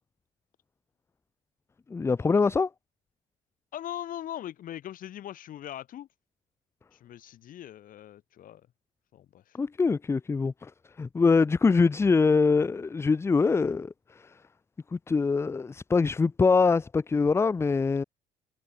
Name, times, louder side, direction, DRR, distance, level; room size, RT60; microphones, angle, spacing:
voice 1, 1.9-2.7 9.6-10.7 11.0-14.3 14.9-18.0, left 4 dB, 15° left, 0.4 m, -24 dB
voice 2, 3.7-6.1 6.9-8.6 9.1-9.6, left 11 dB, 55° left, 0.8 m, -40 dB
cardioid pair, 110°, 17 cm